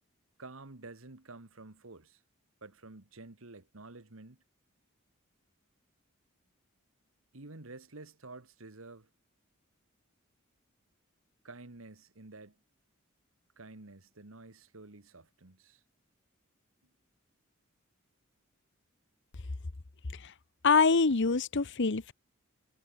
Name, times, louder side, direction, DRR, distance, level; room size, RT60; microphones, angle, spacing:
voice 1, 0.4-2.2 2.6-4.4 7.3-9.1 11.4-12.6 13.6-15.8, right 2 dB, 70° right, 1.8 m, -50 dB
voice 2, 20.6-22.1, left 4 dB, 60° left, 1.0 m, -25 dB
head